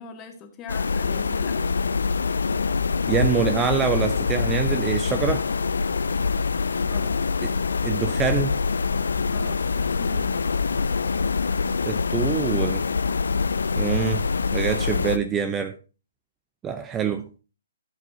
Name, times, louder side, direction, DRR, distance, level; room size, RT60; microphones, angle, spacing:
voice 1, 0.0-1.7 6.8-7.2 9.3-10.4, left 6 dB, 20° left, 2.0 m, -41 dB
sound 1, 0.7-15.2, left 5 dB, 65° left, 0.6 m, -24 dB
voice 2, 3.1-5.5 7.4-7.5 7.8-8.6 11.9-12.8 13.8-14.2 14.5-15.8 16.6-17.3, right 7 dB, 15° right, 0.7 m, -25 dB
15.5 x 8.2 x 2.8 m
figure-of-eight pair, 130°, 0 cm